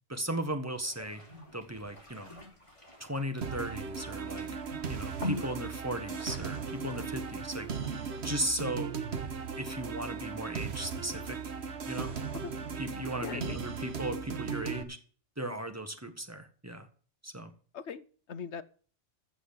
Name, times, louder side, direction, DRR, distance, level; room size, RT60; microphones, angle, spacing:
voice 1, 0.1-1.2 1.5-2.3 3.0-4.5 4.9-7.7 8.2-8.9 9.6-11.4 11.9-12.1 12.8-15.0 15.4-16.9 17.2-17.5, right 1 dB, 15° right, 7 dB, 1.6 m, -36 dB
sound 1, 0.7-8.4, left 1 dB, 25° left, 4.3 m, -45 dB
sound 2, 3.4-14.8, right 6 dB, 60° right, 1.4 m, -37 dB
voice 2, 13.2-13.6 17.7-18.6, left 6 dB, 65° left, 15 dB, 1.1 m, -40 dB
14.5 x 6.4 x 7.9 m, 0.43 s
omnidirectional pair, 1.2 m